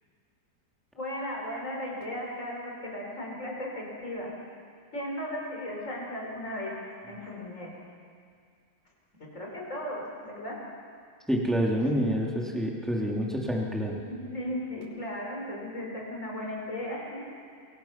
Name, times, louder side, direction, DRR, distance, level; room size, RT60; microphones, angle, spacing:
voice 1, 0.9-4.3 4.9-7.7 9.2-10.6 14.1-17.3, left 1 dB, 45° left, -2 dB, 5.6 m, -36 dB
voice 2, 11.3-14.0, equal, ahead, -2 dB, 2.7 m, -27 dB
28.0 x 23.5 x 5.9 m, 2.2 s
omnidirectional pair, 1.9 m